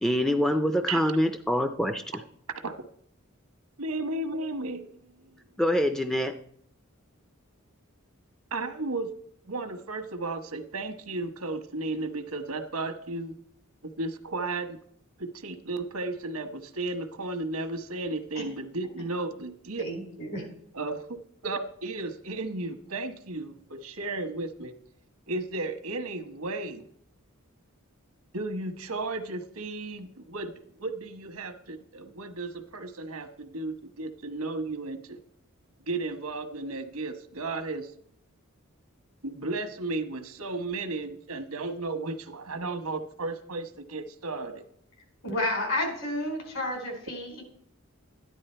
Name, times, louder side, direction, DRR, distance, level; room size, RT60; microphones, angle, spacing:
voice 1, 0.0-2.2 5.6-6.4, equal, ahead, 7 dB, 0.4 m, -25 dB
voice 2, 3.8-5.3 8.5-9.1 9.5-13.3 13.8-14.8 15.2-19.8 20.7-21.2 21.4-24.7 25.3-26.9 28.3-35.2 35.9-37.9 39.2-44.6, right 2 dB, 90° right, 7 dB, 1.2 m, -34 dB
voice 3, 19.8-20.5 45.2-47.4, left 1 dB, 70° left, 2 dB, 4.3 m, -31 dB
13.5 x 10.5 x 4.4 m, 0.68 s
head